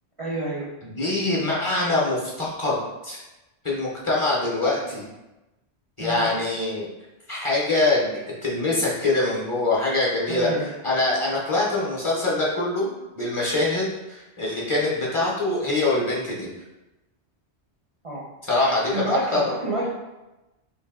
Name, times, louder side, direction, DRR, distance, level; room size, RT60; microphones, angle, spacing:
voice 1, 0.2-0.7 6.0-6.2 10.3-10.7 18.0-18.2 18.9-19.9, right 1 dB, 40° right, -6 dB, 0.5 m, -27 dB
voice 2, 0.8-2.8 3.0-3.2 3.6-5.0 6.0-6.9 7.3-10.5 10.8-16.5 18.4-19.5, left 2 dB, 35° left, -5 dB, 0.6 m, -24 dB
3.3 x 2.6 x 3.5 m, 1.0 s
omnidirectional pair, 1.1 m